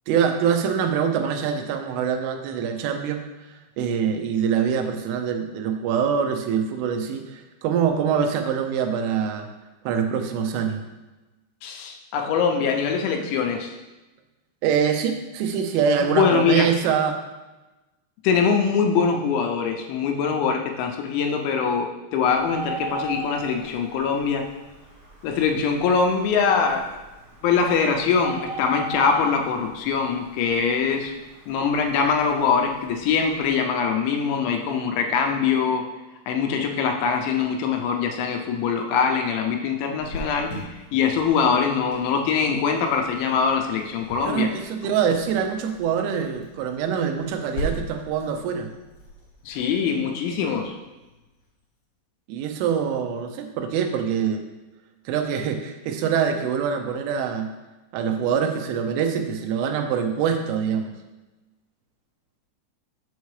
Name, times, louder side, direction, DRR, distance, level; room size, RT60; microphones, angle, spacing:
voice 1, 0.1-9.5 9.9-10.8 14.6-17.2 44.2-48.7 52.3-54.4 55.1-57.5 57.9-60.9, right 7 dB, 85° right, 5 dB, 3.2 m, -24 dB
voice 2, 11.6-13.7 16.0-16.7 18.2-24.5 25.2-27.0 27.4-31.1 31.5-35.9 36.3-40.6 40.9-44.5 49.5-50.7, left 6 dB, 80° left, 3 dB, 2.9 m, -23 dB
Bird, 22.3-33.5, right 1 dB, 55° right, 2.4 m, -39 dB
Cricket, 40.0-51.4, equal, 55° left, 2.9 m, -40 dB
7.4 x 6.9 x 3.2 m, 1.1 s
omnidirectional pair, 5.5 m